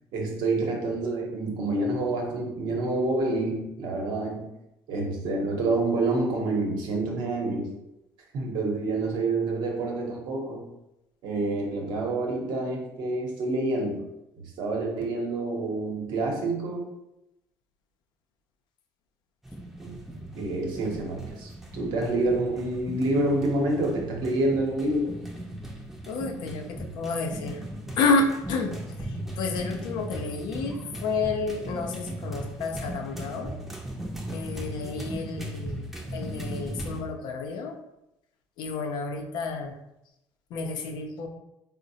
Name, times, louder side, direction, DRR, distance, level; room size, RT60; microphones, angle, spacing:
voice 1, 0.1-4.4 4.9-7.7 8.3-10.6 11.2-14.0 14.6-16.8 19.8-19.9 20.3-25.1, right 2 dB, 70° right, 0 dB, 0.8 m, -27 dB
sound 1, 19.4-37.0, right 1 dB, 5° right, 0.5 m, -38 dB
voice 2, 26.1-27.6 28.0-28.8 29.4-33.5 34.3-37.8 38.6-39.7 40.5-41.3, left 3 dB, 70° left, 4 dB, 0.5 m, -30 dB
3.8 x 2.0 x 2.7 m, 0.88 s
supercardioid pair, 85°, 8 cm